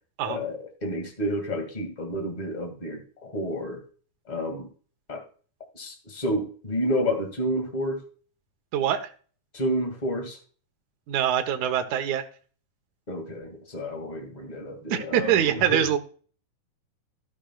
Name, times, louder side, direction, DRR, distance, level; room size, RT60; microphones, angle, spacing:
voice 1, 0.2-3.8 4.3-4.7 5.1-5.2 5.7-8.0 9.5-10.4 13.1-15.9, equal, 20° left, 4 dB, 1.1 m, -30 dB
voice 2, 11.1-12.2 14.9-16.0, right 10 dB, 65° right, 6 dB, 2.1 m, -24 dB
13.5 x 10.0 x 2.4 m, 0.40 s
omnidirectional pair, 4.5 m